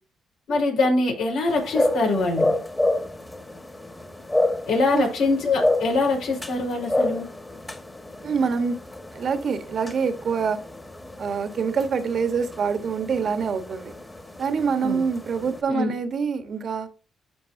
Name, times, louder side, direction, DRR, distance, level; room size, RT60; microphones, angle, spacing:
voice 1, 0.5-2.6 4.7-7.3 14.8-15.0 15.7-15.9, left 3 dB, 80° left, 0 dB, 4.7 m, -23 dB
sound 1, 1.5-15.6, left 1 dB, 15° left, 1.8 m, -30 dB
voice 2, 8.2-8.8 9.1-10.6 11.2-13.9 14.4-16.9, right 5 dB, 60° right, 8 dB, 1.4 m, -25 dB
12.0 x 5.4 x 2.8 m, 0.32 s
cardioid pair, 75°, 0 cm